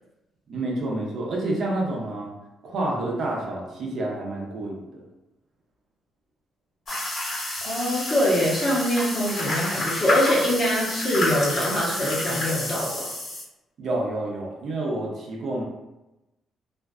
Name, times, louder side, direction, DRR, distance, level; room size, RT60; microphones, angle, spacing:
voice 1, 0.5-2.3 2.6-5.0 13.8-15.6, right 2 dB, 65° right, -2 dB, 0.6 m, -29 dB
sound 1, 6.9-13.4, left 1 dB, 55° left, 1.3 m, -29 dB
voice 2, 7.6-13.1, equal, 40° left, -5 dB, 0.9 m, -24 dB
2.5 x 2.3 x 2.2 m, 0.98 s
cardioid pair, 90°, 0 cm